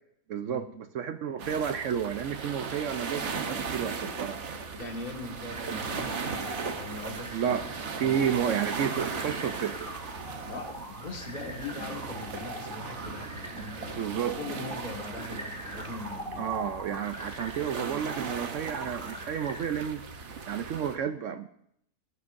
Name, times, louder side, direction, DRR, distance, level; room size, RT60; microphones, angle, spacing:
voice 1, 0.3-4.4 7.3-7.6 8.0-9.9 13.9-14.4 16.4-21.5, right 8 dB, 70° right, 9 dB, 0.7 m, -31 dB
sound 1, 1.4-21.0, right 5 dB, 50° right, 1.1 m, -38 dB
voice 2, 4.7-7.6 8.0-8.2 10.5-16.5, left 2 dB, 25° left, 0 dB, 1.9 m, -41 dB
sound 2, 5.5-19.8, equal, 5° left, 2.0 m, -43 dB
18.5 x 12.5 x 2.6 m, 0.72 s
omnidirectional pair, 1.8 m